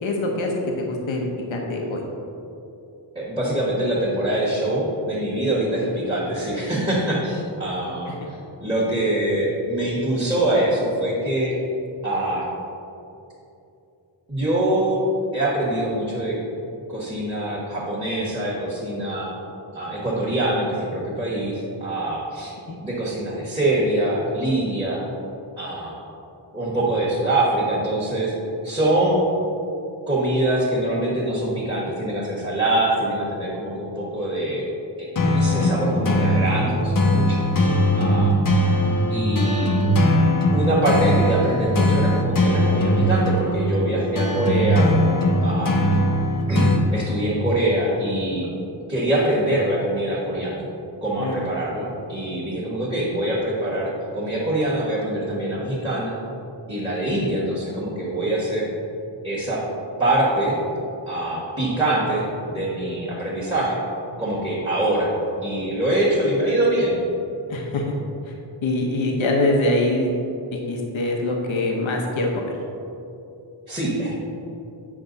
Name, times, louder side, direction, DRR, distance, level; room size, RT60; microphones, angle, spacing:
voice 1, 0.0-2.0 8.1-8.3 22.7-22.8 51.2-51.4 67.5-67.9 68.3-68.4 68.6-70.1 70.5-72.6, left 2 dB, 75° left, 0 dB, 1.0 m, -24 dB
voice 2, 3.1-11.5 12.0-12.5 14.3-15.0 15.3-16.4 16.9-19.3 19.7-22.5 22.8-25.1 25.6-25.9 26.5-28.3 28.6-29.2 30.1-34.6 35.0-37.5 38.0-38.3 39.1-39.8 40.5-44.9 45.4-45.8 46.5-48.5 48.9-50.7 51.0-56.2 56.7-58.7 59.2-59.6 60.0-60.6 61.1-63.8 64.2-65.1 65.4-67.0 73.7-74.1, right 1 dB, 10° right, -9 dB, 1.4 m, -24 dB
sound 1, 35.2-46.8, equal, 45° left, 0.8 m, -20 dB
8.7 x 6.0 x 3.9 m, 2.8 s
wide cardioid pair, 160°, 47 cm